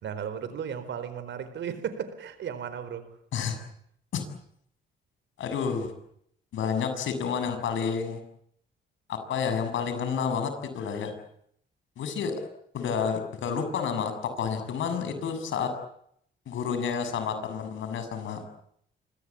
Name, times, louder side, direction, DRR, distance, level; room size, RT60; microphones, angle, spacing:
voice 1, 0.0-3.2 11.0-11.2 14.9-15.1, right 8 dB, 70° right, 13 dB, 4.4 m, -35 dB
voice 2, 5.4-5.9 6.5-8.2 9.1-11.1 12.0-12.3 12.7-14.1 14.4-15.7 16.5-18.4, left 6 dB, 75° left, 8 dB, 7.3 m, -30 dB
27.5 x 25.0 x 8.6 m, 0.73 s
cardioid pair, 90°, 20 cm